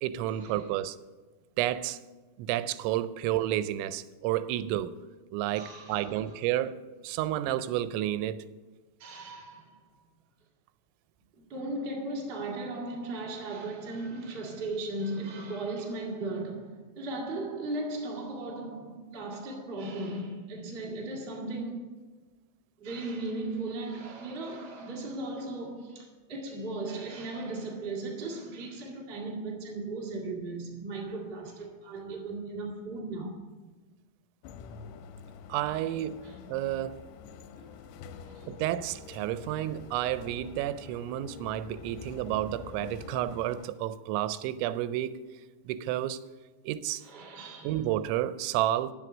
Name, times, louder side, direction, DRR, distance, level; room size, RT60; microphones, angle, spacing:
voice 1, 0.0-1.0 1.6-2.0 2.4-4.9 5.3-6.7 7.0-8.4 35.5-36.2 36.5-37.0 38.5-45.2 45.7-46.2 46.6-47.0 47.6-48.9, right 13 dB, 90° right, 2.9 m, -30 dB
voice 2, 5.5-6.3 9.0-9.7 11.4-21.9 22.8-33.4 36.2-36.4 38.2-38.5 47.0-47.8, right 2 dB, 55° right, 0.6 m, -37 dB
sound 1, 34.4-43.7, left 6 dB, 85° left, 2.6 m, -46 dB
10.5 x 7.7 x 6.2 m
omnidirectional pair, 5.2 m